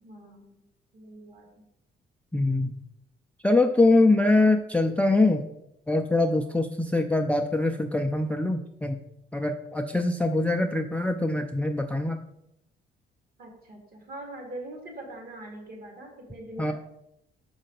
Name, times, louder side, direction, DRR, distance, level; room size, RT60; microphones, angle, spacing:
voice 1, 0.0-0.6 0.9-1.5 13.4-16.7, right 1 dB, 50° right, 0 dB, 2.2 m, -42 dB
voice 2, 2.3-2.7 3.4-5.4 5.9-9.0 9.3-12.2 16.6-16.7, left 2 dB, 5° left, 5 dB, 0.4 m, -23 dB
6.2 x 5.3 x 3.9 m, 0.80 s
cardioid pair, 90°, 20 cm